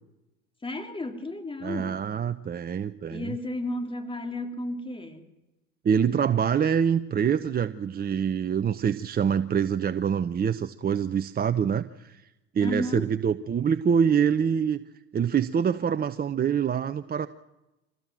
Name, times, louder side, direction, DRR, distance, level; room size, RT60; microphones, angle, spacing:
voice 1, 0.6-2.0 3.1-5.3 12.6-13.1, left 1 dB, 15° left, 6 dB, 2.8 m, -33 dB
voice 2, 1.6-3.3 5.8-12.2 12.5-14.8 15.1-17.3, right 7 dB, 25° right, 10 dB, 0.9 m, -25 dB
25.5 x 18.0 x 7.6 m, 0.97 s
hypercardioid pair, 85°, 34 cm